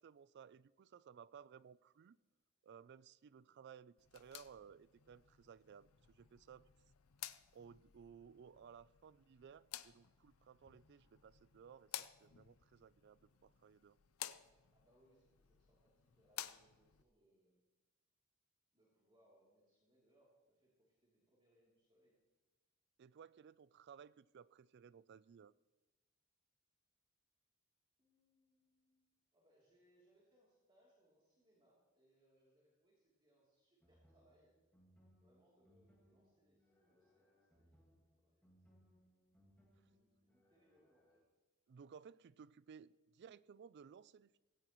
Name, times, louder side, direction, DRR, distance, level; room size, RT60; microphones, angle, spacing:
voice 1, 0.0-2.2 2.6-6.7 7.5-14.0 23.0-25.5 41.7-44.4, right 7 dB, 50° right, 0.3 m, -59 dB
voice 2, 3.2-3.6 14.7-17.6 18.7-22.1 28.0-34.5 35.2-37.8 38.2-38.8 39.9-41.2, right 1 dB, 25° right, 3.1 m, -75 dB
sound 1, 4.0-17.0, left 12 dB, 80° left, 0.6 m, -54 dB
sound 2, 33.8-41.2, equal, 10° left, 2.3 m, -72 dB
18.0 x 17.0 x 3.1 m
head